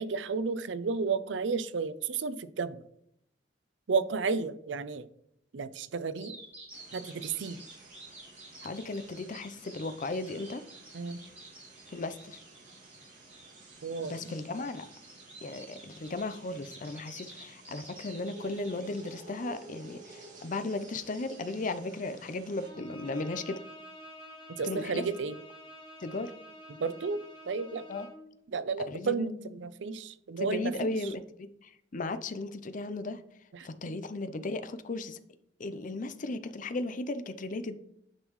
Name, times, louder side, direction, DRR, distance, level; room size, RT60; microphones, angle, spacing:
voice 1, 0.0-2.8 3.9-5.1 5.5-6.3 6.9-7.6 10.9-11.2 13.8-14.3 24.6-25.4 26.8-27.2 27.5-27.8 28.5-30.9, right 4 dB, 90° right, 14 dB, 0.5 m, -32 dB
Bird vocalization bird call bird song, 6.2-19.2, right 2 dB, 10° right, 3.3 m, -51 dB
sound 1, 6.7-22.7, right 3 dB, 45° right, 2.1 m, -53 dB
voice 2, 8.6-10.6 11.9-12.4 14.0-14.9 15.4-23.6 24.6-25.1 26.0-26.3 27.9-28.1 28.9-29.6 30.4-33.2 33.6-35.2 35.6-37.7, left 2 dB, 45° left, 12 dB, 0.5 m, -36 dB
Bowed string instrument, 22.6-28.3, equal, 25° left, 1.8 m, -49 dB
9.7 x 5.4 x 3.1 m, 0.74 s
head